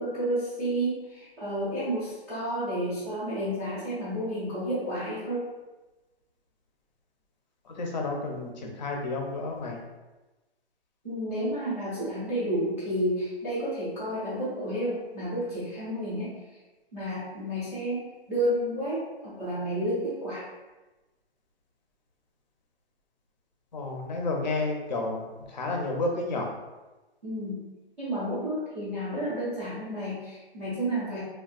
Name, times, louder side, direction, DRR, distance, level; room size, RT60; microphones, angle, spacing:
voice 1, 0.0-5.4 11.0-16.3 16.9-20.4 27.2-27.6 28.0-31.2, right 1 dB, 15° right, -14 dB, 0.4 m, -31 dB
voice 2, 7.6-9.8 23.7-26.5, left 2 dB, 45° left, 1 dB, 0.5 m, -31 dB
3.4 x 2.2 x 2.3 m, 1.1 s
hypercardioid pair, 160°, 32 cm